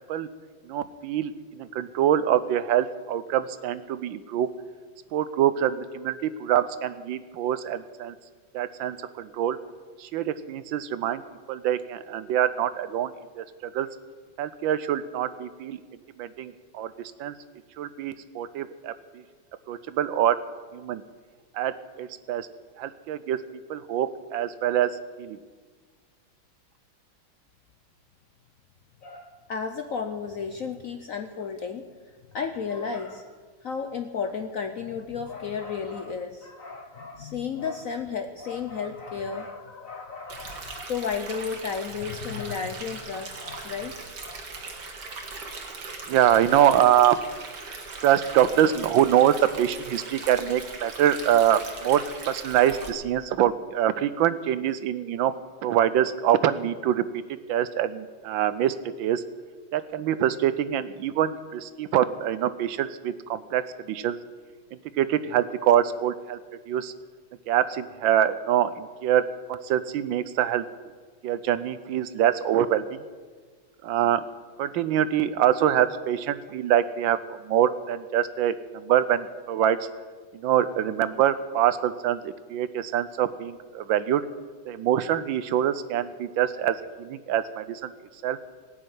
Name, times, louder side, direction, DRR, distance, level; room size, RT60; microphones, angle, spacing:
voice 1, 0.7-4.5 5.1-8.1 8.5-9.6 10.0-11.2 11.5-13.9 14.4-15.8 16.2-17.3 17.8-19.2 19.7-20.4 20.7-21.0 21.5-22.5 22.8-23.4 23.7-24.9 25.2-25.4 46.1-47.2 48.0-55.3 55.6-57.2 57.5-59.2 59.7-64.2 64.7-66.4 66.7-66.9 67.5-69.2 69.5-70.6 71.2-73.0 73.8-74.2 74.6-77.2 77.4-79.9 80.3-84.2 84.7-87.9 88.2-88.4, right 10 dB, 75° right, 14 dB, 1.3 m, -25 dB
voice 2, 29.0-31.9 32.3-33.3 33.6-44.4, left 6 dB, 60° left, 7 dB, 0.8 m, -33 dB
Stream, 40.3-52.9, right 3 dB, 55° right, 2.2 m, -39 dB
19.0 x 6.5 x 9.3 m, 1.5 s
omnidirectional pair, 2.2 m